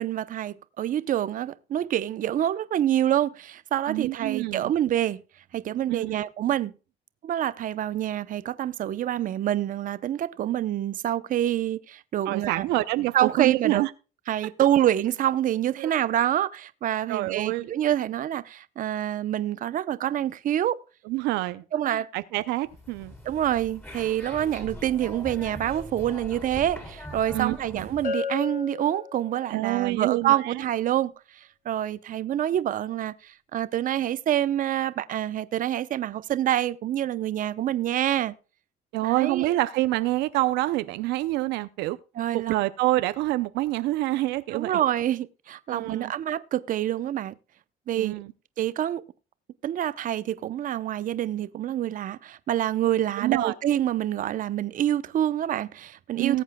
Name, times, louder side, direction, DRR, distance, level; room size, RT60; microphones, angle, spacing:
voice 1, 0.0-5.2 5.5-6.7 7.2-12.7 13.1-13.8 14.3-20.8 21.7-22.1 23.2-38.3 39.0-39.5 42.2-42.6 44.5-47.3 47.9-48.2 48.6-49.0 49.6-56.4, right 11 dB, 55° right, 0.7 m, -27 dB
voice 2, 3.9-4.7 5.9-6.2 12.3-13.9 15.8-15.9 17.1-17.7 21.1-23.1 27.3-27.9 29.5-30.6 38.9-42.0 42.3-44.7 45.7-46.1 48.0-48.3 53.2-53.5 56.2-56.4, right 17 dB, 90° right, 0.6 m, -27 dB
sound 1, 22.7-28.1, left 1 dB, 10° left, 3.6 m, -41 dB
Bell, 28.0-29.7, left 5 dB, 55° left, 3.8 m, -33 dB
19.0 x 8.0 x 2.2 m
cardioid pair, 110°, 17 cm